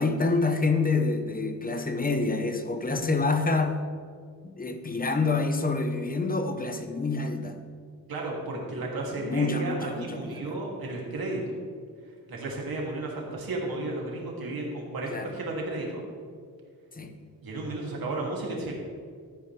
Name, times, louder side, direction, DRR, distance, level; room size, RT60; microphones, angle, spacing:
voice 1, 0.0-3.8 4.4-7.6 9.2-10.6 15.1-15.3 16.9-17.2, left 3 dB, 25° left, 7 dB, 0.9 m, -27 dB
voice 2, 8.1-11.5 12.3-16.0 17.4-18.7, right 2 dB, 75° right, -2 dB, 2.5 m, -33 dB
14.0 x 9.4 x 3.3 m, 2.1 s
wide cardioid pair, 115°, 36 cm